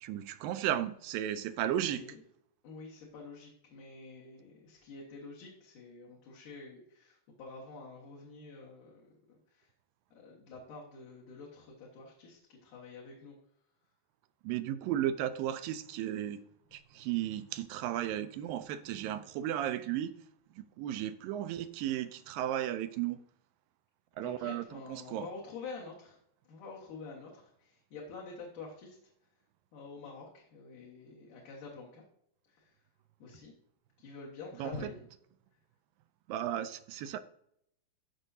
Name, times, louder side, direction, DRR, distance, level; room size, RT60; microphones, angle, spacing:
voice 1, 0.0-2.0 14.4-16.4 16.7-20.1 20.6-23.2 24.2-25.3 34.6-34.9 36.3-37.2, right 11 dB, 80° right, 2.1 m, -34 dB
voice 2, 1.6-2.2 2.6-9.0 9.3-9.7 10.1-13.3 24.2-26.2 26.5-29.0 29.7-32.0 32.5-32.7 33.2-33.5 34.0-35.1, left 4 dB, 65° left, 2.8 m, -48 dB
14.0 x 5.4 x 2.7 m
omnidirectional pair, 4.2 m